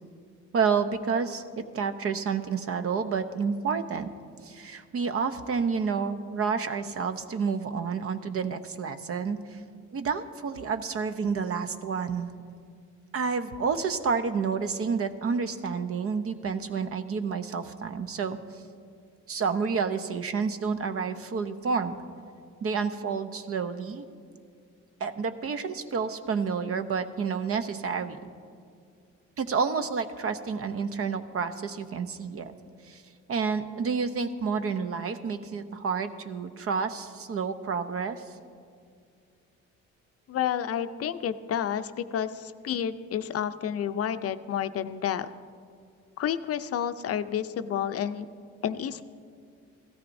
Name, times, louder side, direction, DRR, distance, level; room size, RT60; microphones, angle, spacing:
voice 1, 0.5-4.1 4.4-9.6 9.9-12.3 13.1-18.4 19.3-22.0 22.6-24.0 25.0-28.3 29.4-32.5 32.9-33.0 33.3-38.2, right 5 dB, 50° right, 9 dB, 0.7 m, -29 dB
voice 2, 40.3-45.3 46.2-48.3 48.6-49.0, left 9 dB, 50° left, 11 dB, 0.5 m, -30 dB
16.0 x 13.5 x 2.6 m, 2.2 s
cardioid pair, 90°, 30 cm